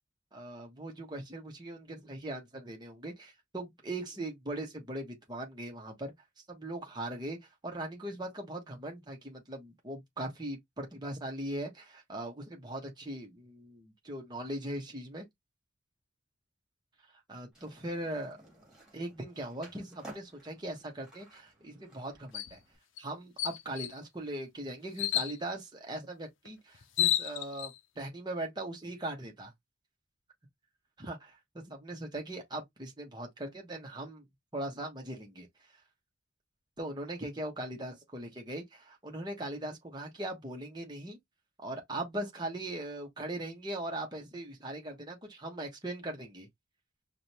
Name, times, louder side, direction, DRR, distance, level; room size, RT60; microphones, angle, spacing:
voice 1, 0.3-6.1 6.5-7.4 7.6-15.2 17.3-18.4 18.9-22.6 23.0-29.5 31.0-34.2 34.5-35.5 36.8-41.2 41.6-46.5, right 1 dB, 20° right, 1.2 m, -40 dB
Skateboard, 17.5-22.8, right 1 dB, 5° right, 2.3 m, -54 dB
sound 1, 22.3-22.5 23.0-23.1 23.4-24.0 25.0-25.4 26.5-26.6 26.8-27.7, left 12 dB, 70° left, 0.6 m, -30 dB
5.0 x 2.6 x 2.9 m
head